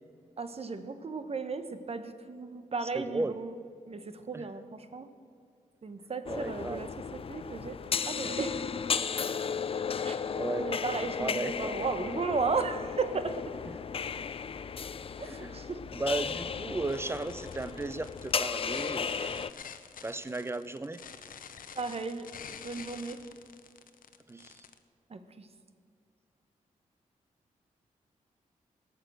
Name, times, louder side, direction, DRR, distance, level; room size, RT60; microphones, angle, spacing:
voice 1, 0.4-3.5 3.9-5.1 5.8-7.8 8.0-8.6 10.0-10.2 10.6-13.3 15.2-15.8 21.7-22.3 22.6-23.2 25.1-25.5, right 4 dB, 45° right, 10 dB, 1.0 m, -35 dB
voice 2, 2.9-3.3 4.3-4.5 6.3-6.9 8.2-8.4 10.3-10.7 11.2-11.9 13.7-13.8 14.1-14.2 15.2-15.6 15.9-19.4 20.0-21.0 24.3-24.6, right 2 dB, 15° right, 14 dB, 0.6 m, -35 dB
sound 1, 6.3-19.5, left 6 dB, 40° left, 0.4 m, -35 dB
sound 2, 16.9-24.8, left 7 dB, 75° left, 0.7 m, -48 dB
17.5 x 6.7 x 7.8 m, 2.2 s
cardioid pair, 80°, 15 cm